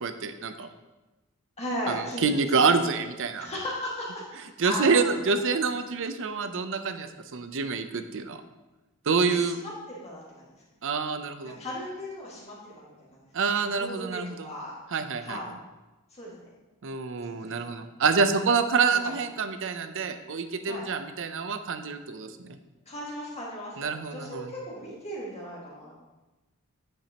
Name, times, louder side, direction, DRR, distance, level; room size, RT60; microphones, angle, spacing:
voice 1, 0.0-0.7 1.9-3.5 4.6-8.4 9.1-9.6 10.8-11.6 13.3-14.5 14.9-15.4 16.8-22.6 23.8-24.5, right 5 dB, 60° right, 9 dB, 0.6 m, -27 dB
voice 2, 1.6-2.7 3.4-4.3 4.6-5.2 9.2-10.6 11.6-13.0 13.6-14.7 15.2-15.5 16.1-16.5 17.3-17.8 18.9-19.1 20.7-20.9 22.9-25.9, equal, 30° left, -6 dB, 1.9 m, -37 dB
9.0 x 8.2 x 2.9 m, 1.1 s
head